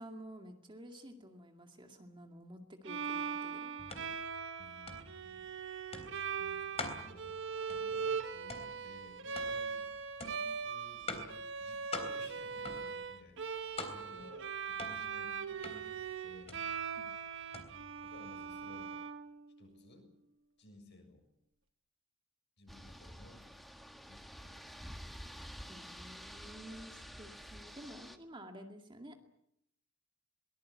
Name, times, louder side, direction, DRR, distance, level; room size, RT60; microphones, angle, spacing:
voice 1, 0.0-3.7 14.1-14.3 17.0-17.1 25.7-29.2, equal, 25° right, 4 dB, 2.2 m, -51 dB
Bowed string instrument, 2.8-19.8, right 6 dB, 60° right, 1.6 m, -40 dB
sound 1, 3.8-18.9, left 3 dB, 30° left, 3.5 m, -47 dB
voice 2, 4.6-5.6 5.9-7.3 7.7-9.9 10.2-11.1 11.6-16.7 18.0-19.0 19.6-20.1 20.6-21.3 22.6-23.5 24.1-24.7 25.7-25.9, left 1 dB, 55° left, 3 dB, 7.1 m, -58 dB
sound 2, 22.7-28.2, equal, ahead, 1.6 m, -49 dB
23.0 x 19.5 x 8.4 m, 0.76 s
head